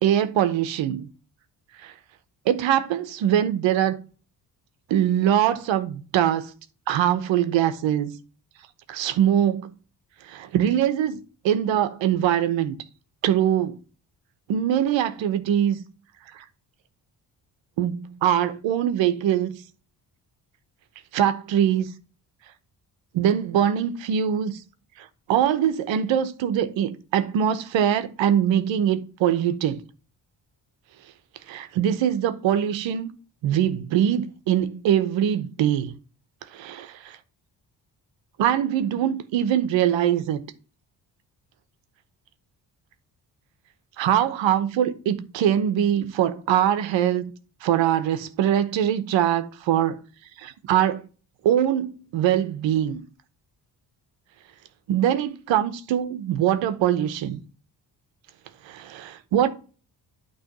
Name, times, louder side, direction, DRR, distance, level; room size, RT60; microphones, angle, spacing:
voice 1, 0.0-1.1 1.8-1.9 2.5-4.0 4.9-6.5 6.9-8.1 8.9-9.7 10.2-11.2 11.4-12.8 13.2-13.8 14.5-15.8 16.3-16.4 17.8-19.6 21.1-21.9 23.1-24.6 25.0-29.8 31.5-33.1 33.4-35.9 36.5-37.2 38.4-40.4 44.0-47.3 47.6-50.0 50.4-51.0 51.4-53.0 54.9-57.4 58.6-59.5, right 10 dB, 85° right, 0.9 m, -23 dB
8.8 x 3.2 x 6.0 m
supercardioid pair, 60°, 44 cm